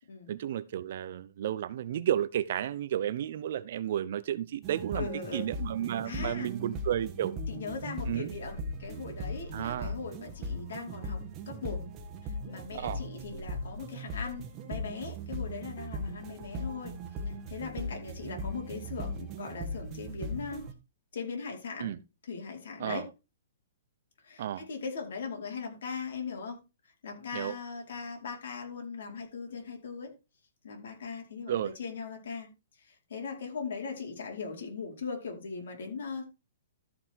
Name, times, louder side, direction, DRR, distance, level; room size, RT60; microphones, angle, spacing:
voice 1, 0.3-7.3 8.0-8.3 9.5-10.0 12.7-13.0 21.8-22.0 22.8-23.1 24.4-24.6 27.3-27.6 31.5-31.7, right 11 dB, 50° right, 0.8 m, -32 dB
sound 1, 4.6-20.7, equal, 20° right, 1.5 m, -39 dB
voice 2, 4.9-5.6 6.0-6.5 7.5-11.8 12.2-14.4 14.7-17.0 17.5-20.6 21.1-21.9 22.2-23.1 24.2-26.6 27.0-30.1 30.6-32.5 32.9-36.4, left 5 dB, 70° left, 4.9 m, -39 dB
13.5 x 5.6 x 4.6 m
hypercardioid pair, 165°, 0 cm